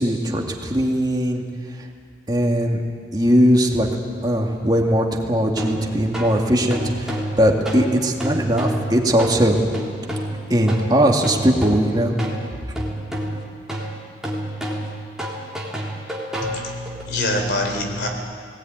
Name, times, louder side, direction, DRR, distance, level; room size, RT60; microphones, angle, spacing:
voice 1, 0.0-1.4 2.3-2.8 3.1-3.9 4.2-9.6 10.5-12.2, equal, 25° right, 1 dB, 2.3 m, -19 dB
sound 1, 5.5-17.0, right 1 dB, 5° right, 3.3 m, -29 dB
voice 2, 16.4-18.1, left 1 dB, 65° left, 3 dB, 3.7 m, -25 dB
19.0 x 18.5 x 9.4 m, 2.4 s
head